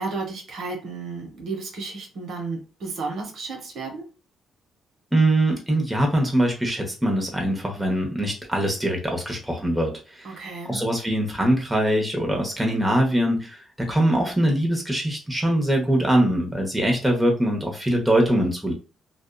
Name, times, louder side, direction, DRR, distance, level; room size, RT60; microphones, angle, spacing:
voice 1, 0.0-4.0 10.2-10.8, right 3 dB, 70° right, 2 dB, 0.9 m, -33 dB
voice 2, 5.1-10.4 10.6-18.7, right 1 dB, 5° right, 1 dB, 0.9 m, -22 dB
2.6 x 2.3 x 2.2 m, 0.35 s
cardioid pair, 90°, 0 cm